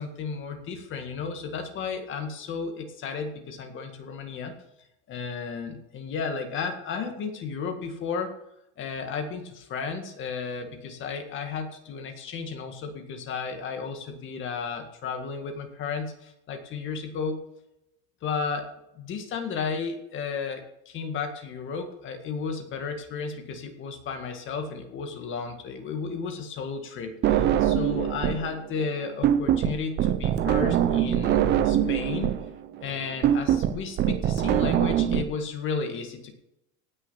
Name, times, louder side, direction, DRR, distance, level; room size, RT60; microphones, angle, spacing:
voice 1, 0.0-4.6 5.1-8.3 8.8-17.4 18.2-18.7 19.0-32.4 32.8-36.3, left 5 dB, 30° left, 5 dB, 1.9 m, -33 dB
sound 1, 27.2-28.5 28.8-35.2, right 10 dB, 25° right, 0.7 m, -23 dB
17.5 x 6.6 x 5.8 m, 0.85 s
supercardioid pair, 155°, 40 cm